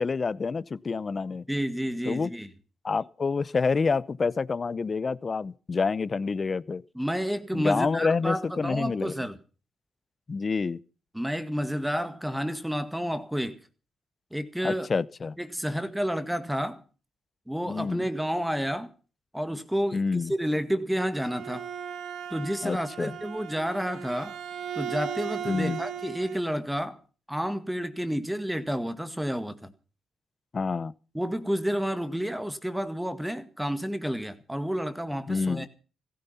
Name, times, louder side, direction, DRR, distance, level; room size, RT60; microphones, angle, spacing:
voice 1, 0.0-1.4 2.1-2.3 2.8-6.8 7.5-9.1 10.3-10.8 14.6-15.4 17.7-18.0 19.9-20.3 22.6-23.2 25.5-25.8 30.5-30.9 35.3-35.7, left 4 dB, 35° left, 0.8 m, -28 dB
voice 2, 1.5-2.5 7.0-9.4 11.1-13.6 14.3-14.9 15.4-16.8 17.5-18.9 19.3-21.7 22.3-24.4 24.7-27.0 27.3-29.7 31.1-35.7, equal, 5° right, 1.8 m, -30 dB
Bowed string instrument, 20.9-26.5, right 8 dB, 75° right, 1.6 m, -37 dB
16.0 x 14.5 x 5.7 m
cardioid pair, 90°, 0 cm